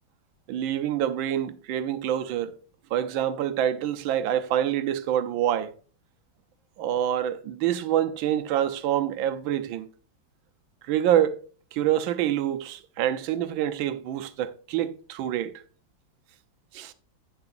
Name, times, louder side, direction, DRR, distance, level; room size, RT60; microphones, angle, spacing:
voice 1, 0.5-2.6 2.9-5.7 6.8-9.9 10.8-11.4 11.7-15.6 16.7-16.9, right 11 dB, 90° right, 1.5 m, -26 dB
10.5 x 8.0 x 2.5 m
omnidirectional pair, 2.1 m